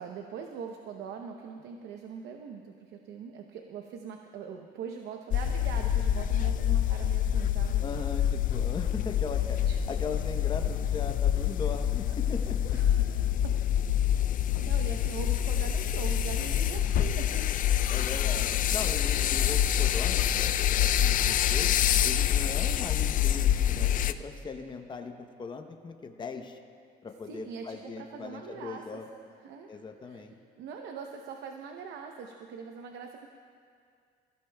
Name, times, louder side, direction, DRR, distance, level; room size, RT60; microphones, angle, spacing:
voice 1, 0.0-7.8 9.5-9.8 12.1-12.2 12.7-13.6 14.1-17.5 18.8-18.9 27.3-29.0 29.4-30.2 30.6-33.3, right 6 dB, 75° right, 3 dB, 0.8 m, -42 dB
sound 1, 5.3-24.1, left 10 dB, 55° left, 0.4 m, -26 dB
voice 2, 7.8-9.6 9.9-12.8 17.9-21.7 22.0-26.6 27.0-29.1 29.7-30.3, left 4 dB, 25° left, 5 dB, 0.8 m, -39 dB
22.5 x 15.0 x 2.3 m, 2.2 s
cardioid pair, 110°, 17 cm